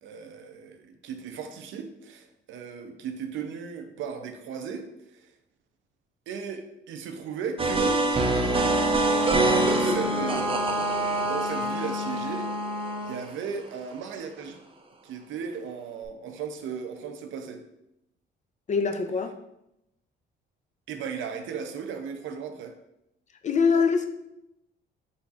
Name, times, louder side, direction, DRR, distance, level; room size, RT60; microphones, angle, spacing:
voice 1, 0.0-5.3 6.3-8.3 9.3-12.5 13.0-14.6 15.0-17.6 20.9-22.7, right 6 dB, 80° right, 0.6 m, -36 dB
sound 1, 7.6-13.4, right 2 dB, 25° right, 0.5 m, -26 dB
Wind instrument woodwind instrument, 8.2-13.2, equal, 5° left, 1.0 m, -30 dB
voice 2, 18.7-19.3 23.4-24.0, left 5 dB, 35° left, 0.5 m, -23 dB
4.4 x 4.0 x 2.4 m
cardioid pair, 90°, 20 cm